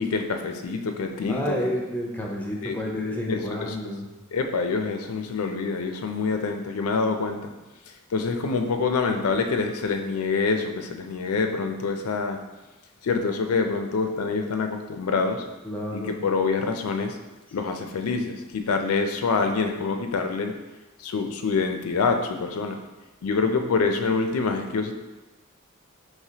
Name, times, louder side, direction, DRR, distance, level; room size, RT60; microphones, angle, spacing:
voice 1, 0.0-1.6 2.6-3.8 4.3-7.5 8.1-12.4 13.0-15.4 15.9-17.2 17.5-20.6 21.0-22.8 23.2-24.9, left 4 dB, 90° left, 5 dB, 0.4 m, -26 dB
voice 2, 1.3-4.1 15.6-16.1, equal, 10° left, -1 dB, 0.5 m, -30 dB
4.7 x 3.2 x 2.8 m, 1.1 s
head